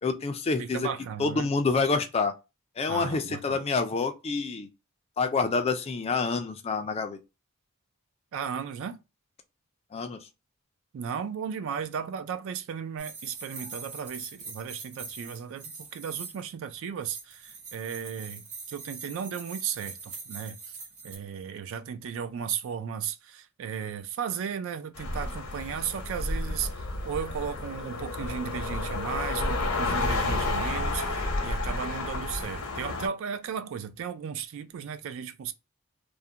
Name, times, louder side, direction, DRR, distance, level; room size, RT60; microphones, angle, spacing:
voice 1, 0.0-0.9 1.2-2.3 2.8-4.7 5.2-7.2 9.9-10.3, left 4 dB, 30° left, 0.3 m, -27 dB
voice 2, 0.6-1.5 2.9-3.6 8.3-9.0 10.9-20.8 21.0-35.5, right 7 dB, 60° right, 0.3 m, -35 dB
sound 1, 13.0-16.5 17.0-21.2, right 4 dB, 80° right, 1.0 m, -43 dB
sound 2, 24.9-33.1, left 2 dB, 75° left, 0.6 m, -31 dB
2.4 x 2.1 x 2.7 m
head